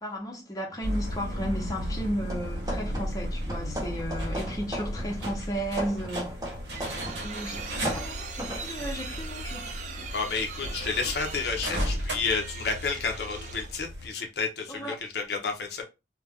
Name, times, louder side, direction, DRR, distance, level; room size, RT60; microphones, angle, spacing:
voice 1, 0.0-6.4 7.2-10.1 14.7-15.0, equal, 20° left, 0.7 m, -34 dB
sound 1, 0.8-14.1, equal, 70° right, 0.9 m, -35 dB
sound 2, 2.3-3.2 3.5-7.3 7.6-8.7, right 1 dB, 20° right, 0.8 m, -37 dB
sound 3, 6.3-13.8, right 6 dB, 40° right, 0.3 m, -41 dB
voice 2, 10.1-15.8, left 4 dB, 65° left, 0.5 m, -31 dB
2.4 x 2.1 x 3.4 m
head